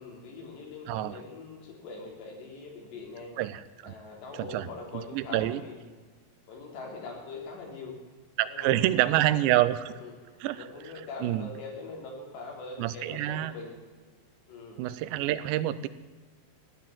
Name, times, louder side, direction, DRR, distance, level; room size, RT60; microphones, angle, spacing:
voice 1, 0.0-3.3 3.8-5.8 6.5-8.0 8.5-9.4 9.9-13.7 14.5-14.8, left 3 dB, 75° left, 0 dB, 5.4 m, -42 dB
voice 2, 0.9-1.2 3.4-3.9 4.3-4.7 4.9-5.6 8.4-9.8 10.4-10.6 11.2-11.5 12.8-13.5 14.8-15.9, right 14 dB, 85° right, 15 dB, 2.9 m, -27 dB
16.0 x 10.5 x 7.5 m, 1.4 s
omnidirectional pair, 5.1 m